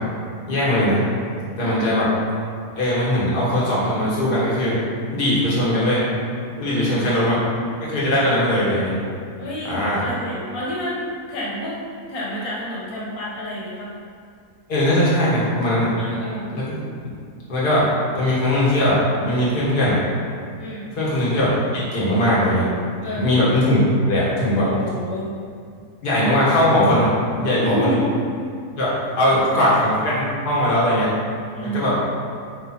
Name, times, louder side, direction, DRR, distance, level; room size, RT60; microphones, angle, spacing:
voice 1, 0.5-1.0 1.6-2.1 2.8-4.7 5.1-6.0 6.6-7.4 7.8-8.9 9.6-10.0 14.7-15.9 16.5-16.7 17.5-17.9 18.1-20.0 21.0-22.6 23.1-23.8 24.1-24.7 26.0-27.1 27.4-28.0 28.8-28.9 29.2-31.1 31.6-32.0, left 1 dB, 85° left, -7 dB, 2.5 m, -19 dB
voice 2, 1.6-1.9 6.6-7.1 9.4-11.0 11.3-11.8 12.1-13.9 16.0-16.5 20.6-20.9 23.0-23.3 24.6-25.3 27.6-28.2 29.3-29.7 31.5-31.9, equal, 70° left, -6 dB, 2.1 m, -29 dB
9.2 x 4.9 x 4.4 m, 2.3 s
omnidirectional pair, 1.6 m